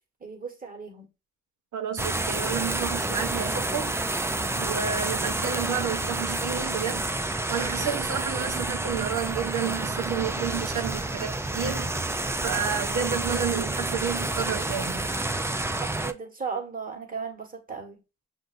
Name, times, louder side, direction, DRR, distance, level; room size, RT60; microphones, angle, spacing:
voice 1, 0.2-1.1 15.8-18.0, right 5 dB, 30° right, 1.4 m, -36 dB
voice 2, 1.7-3.9 4.6-7.1 7.5-11.9 12.4-15.1, right 8 dB, 75° right, 0.8 m, -30 dB
sound 1, 2.0-16.1, right 2 dB, 10° right, 0.3 m, -29 dB
6.2 x 2.6 x 2.5 m
cardioid pair, 65°, 30 cm